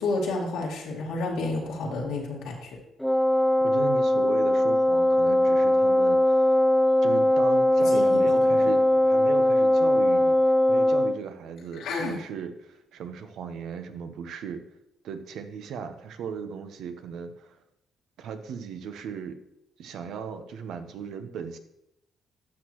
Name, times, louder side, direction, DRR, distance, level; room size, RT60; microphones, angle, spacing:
voice 1, 0.0-2.8 7.8-8.7 11.7-12.2, left 2 dB, 90° left, -1 dB, 2.1 m, -31 dB
Wind instrument woodwind instrument, 3.0-11.2, left 1 dB, ahead, 0.3 m, -21 dB
voice 2, 3.6-6.6 7.0-10.4 10.7-14.6 15.0-17.6 18.2-19.4 19.8-21.6, right 6 dB, 80° right, 8 dB, 0.8 m, -37 dB
12.0 x 6.3 x 3.1 m, 0.82 s
cardioid pair, 90°, 0 cm